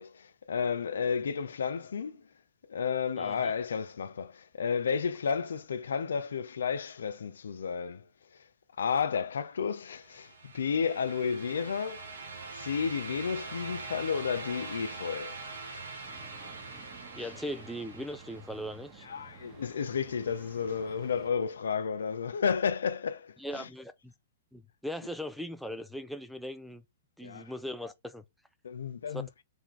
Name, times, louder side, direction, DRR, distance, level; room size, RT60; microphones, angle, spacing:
voice 1, 0.0-2.2 2.7-8.0 8.8-12.1 12.5-15.8 17.2-17.4 19.0-23.7 27.2-27.5 28.6-29.3, left 6 dB, 85° left, 0.5 m, -32 dB
voice 2, 3.2-3.5 17.2-19.1 23.4-24.1 24.5-26.8 27.2-28.2 29.1-29.2, equal, ahead, 0.4 m, -39 dB
sound 1, 9.9-18.8, right 3 dB, 80° right, 1.2 m, -43 dB
sound 2, 16.0-21.3, right 4 dB, 30° right, 1.2 m, -52 dB
3.5 x 2.4 x 4.5 m
hypercardioid pair, 130°, 0 cm